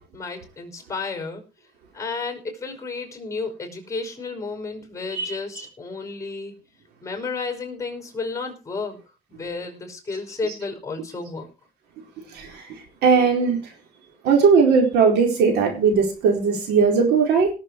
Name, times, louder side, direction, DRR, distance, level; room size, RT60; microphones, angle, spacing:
voice 1, 0.1-1.4 1.9-6.5 7.0-9.0 9.3-11.5, left 4 dB, 20° left, 4 dB, 5.1 m, -32 dB
voice 2, 12.3-12.6 13.0-13.6 14.2-17.5, right 5 dB, 80° right, 3 dB, 4.6 m, -18 dB
18.5 x 7.4 x 4.7 m, 0.33 s
cardioid pair, 110°, 17 cm